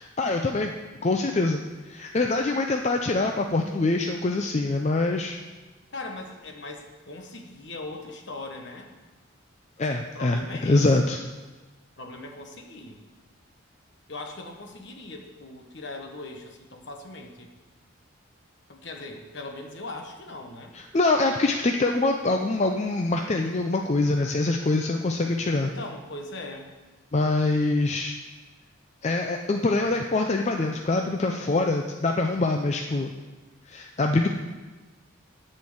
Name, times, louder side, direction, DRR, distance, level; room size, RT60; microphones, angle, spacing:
voice 1, 0.2-0.7 1.0-1.6 1.9-5.4 9.8-11.2 20.7-25.7 27.1-28.2 29.0-33.1 33.7-34.3, left 2 dB, 35° left, 3 dB, 0.4 m, -24 dB
voice 2, 5.9-8.9 10.1-11.1 12.0-13.0 14.1-17.5 18.7-20.7 25.6-26.7, left 2 dB, 60° left, 3 dB, 1.1 m, -40 dB
10.5 x 4.4 x 7.8 m, 1.3 s
head